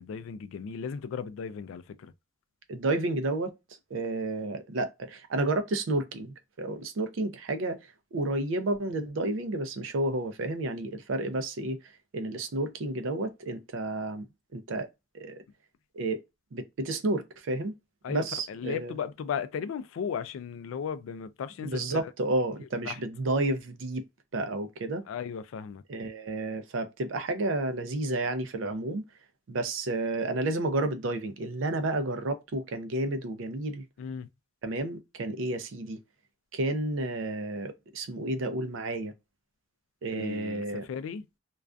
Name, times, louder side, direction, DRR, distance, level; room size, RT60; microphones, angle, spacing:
voice 1, 0.0-2.1 18.0-22.1 22.9-23.0 25.1-25.8 34.0-34.3 40.1-41.3, left 7 dB, 90° left, 0.3 m, -36 dB
voice 2, 2.7-3.5 3.9-7.8 8.1-11.8 12.1-14.3 14.5-14.9 15.1-15.4 15.9-16.2 16.5-17.7 18.1-18.9 21.6-24.0 24.3-25.0 25.9-29.0 29.5-33.8 34.6-36.0 36.5-39.1 40.0-40.9, right 2 dB, 80° right, 0.5 m, -31 dB
2.4 x 2.2 x 2.3 m
head